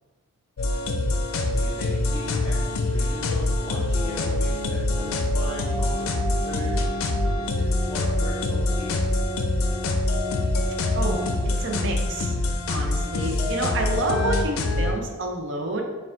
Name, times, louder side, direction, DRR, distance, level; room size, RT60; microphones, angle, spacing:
sound 1, 0.6-14.9, left 2 dB, 90° left, 0.4 m, -25 dB
voice 1, 1.5-6.8 7.3-9.1, left 1 dB, 25° left, -3 dB, 0.5 m, -38 dB
voice 2, 10.9-12.3 12.7-15.8, right 2 dB, 60° right, 2 dB, 0.6 m, -29 dB
4.6 x 2.4 x 3.6 m, 1.3 s
head